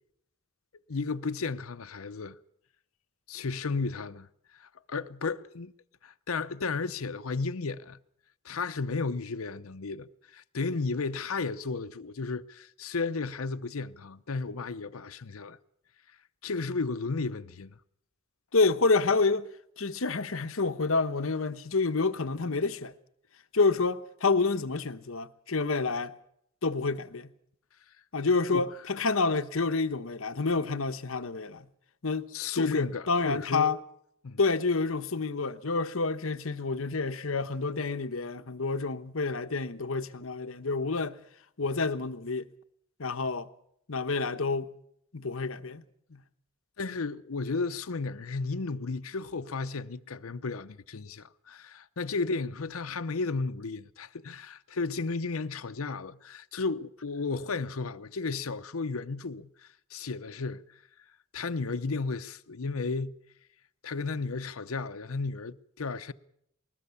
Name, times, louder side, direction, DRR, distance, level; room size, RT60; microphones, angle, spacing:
voice 1, 0.9-2.4 3.3-4.3 4.5-5.7 6.0-8.0 8.4-15.6 16.4-17.7 28.5-28.7 32.3-33.8 34.2-34.4 46.8-60.6 61.3-63.2 63.8-66.1, left 4 dB, 85° left, 0.8 m, -33 dB
voice 2, 18.5-19.5 19.8-22.9 23.5-26.2 26.6-27.3 28.1-31.7 32.0-32.3 32.5-33.8 34.4-41.2 41.6-42.5 43.0-43.5 43.9-44.7 45.1-45.8 46.1-46.2, left 4 dB, 70° left, 1.1 m, -28 dB
20.0 x 20.0 x 7.0 m
head